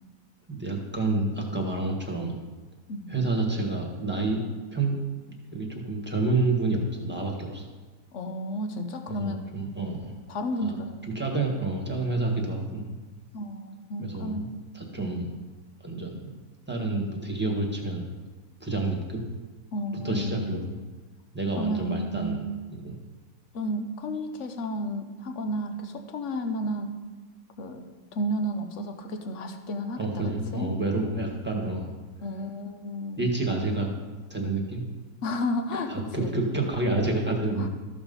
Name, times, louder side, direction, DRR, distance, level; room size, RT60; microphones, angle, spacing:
voice 1, 0.5-2.3 3.1-4.4 4.7-5.0 5.5-7.6 9.2-10.1 10.6-10.8 11.1-12.9 14.0-14.5 14.7-15.3 15.8-16.3 16.7-18.1 18.6-19.2 20.0-20.6 21.3-22.4 22.8-22.9 30.0-31.9 33.2-33.9 34.3-34.8 35.9-37.7, right 2 dB, 5° right, 0 dB, 1.5 m, -28 dB
voice 2, 8.1-9.4 10.3-11.0 13.3-14.6 19.7-20.6 21.6-22.6 23.5-26.9 27.6-27.9 28.1-30.8 32.2-33.3 35.2-36.3 37.6-37.7, equal, 50° left, 6 dB, 1.1 m, -32 dB
13.5 x 6.1 x 5.5 m, 1.3 s
omnidirectional pair, 1.9 m